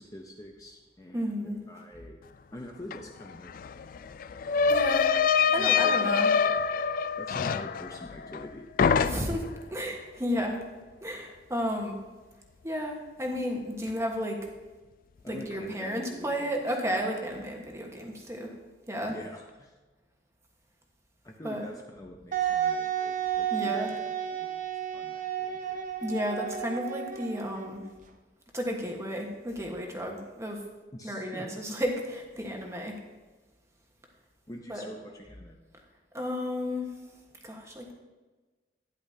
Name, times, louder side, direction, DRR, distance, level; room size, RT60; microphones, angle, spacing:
voice 1, 0.0-2.2 2.5-3.8 5.6-6.3 7.2-8.7 15.2-17.0 19.1-19.8 21.2-24.0 24.4-25.8 30.9-31.5 34.5-35.6, left 1 dB, 20° left, 0 dB, 0.8 m, -45 dB
voice 2, 1.1-1.6 4.7-5.1 5.5-6.3 9.0-10.6 11.0-12.0 12.6-14.4 15.3-18.5 18.9-19.1 21.4-21.6 23.5-23.9 26.0-27.8 28.5-30.6 31.0-33.0 34.7-34.9 36.1-36.9 37.4-37.9, equal, 15° right, 1 dB, 1.4 m, -32 dB
sound 1, 2.9-3.0 3.3-8.5 8.8-9.5, left 6 dB, 50° left, 0.3 m, -25 dB
Wind instrument woodwind instrument, 22.3-27.9, right 9 dB, 50° right, 0.7 m, -32 dB
12.0 x 10.0 x 2.8 m, 1.3 s
head